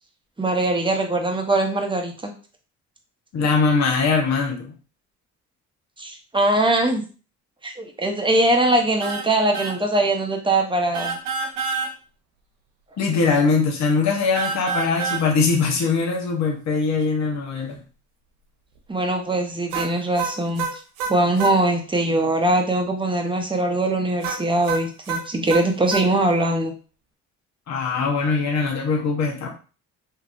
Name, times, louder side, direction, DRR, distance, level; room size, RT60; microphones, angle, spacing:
voice 1, 0.4-2.3 6.0-7.0 7.6-11.2 18.9-20.8 21.1-26.7, right 1 dB, 15° right, 2 dB, 0.9 m, -21 dB
voice 2, 3.3-4.7 13.0-17.8 27.7-29.5, left 4 dB, 50° left, 0 dB, 1.0 m, -21 dB
sound 1, 9.0-9.3 9.5-9.8 10.9-11.9 14.3-15.3 19.7-21.6 24.2-26.1, right 5 dB, 90° right, 0.6 m, -27 dB
3.2 x 2.8 x 2.5 m, 0.37 s
supercardioid pair, 60°, 35 cm